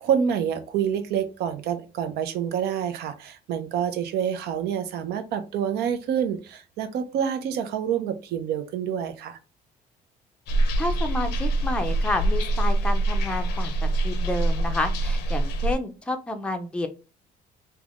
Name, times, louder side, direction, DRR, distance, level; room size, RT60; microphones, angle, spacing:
voice 1, 0.0-9.4, right 8 dB, 75° right, 0.5 m, -27 dB
sound 1, 10.5-15.8, right 2 dB, 85° left, 0.5 m, -24 dB
voice 2, 10.8-16.9, left 2 dB, 5° left, 0.4 m, -30 dB
3.2 x 2.2 x 2.4 m
cardioid pair, 110°, 17 cm